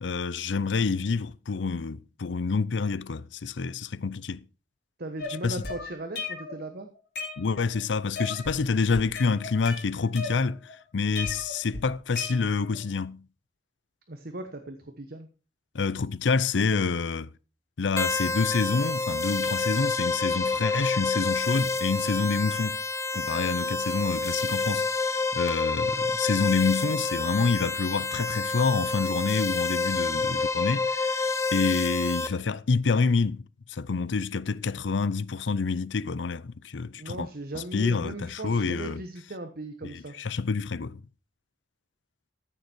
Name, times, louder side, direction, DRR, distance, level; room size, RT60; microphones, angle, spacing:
voice 1, 0.0-4.4 5.4-5.6 7.4-13.2 15.7-17.3 17.8-22.8 23.1-24.9 25.3-31.2 31.5-33.4 33.7-37.3 37.5-39.0 39.9-41.0, left 4 dB, 85° left, 0.6 m, -27 dB
voice 2, 5.0-6.9 14.1-15.3 36.9-40.1, right 1 dB, 55° right, 1.2 m, -38 dB
sound 1, 5.2-6.6 6.9-7.8 8.1-8.6 8.9-10.7 11.1-12.8, left 4 dB, 65° left, 4.0 m, -36 dB
sound 2, 18.0-32.3, left 3 dB, 15° left, 0.7 m, -28 dB
14.5 x 6.9 x 4.5 m
head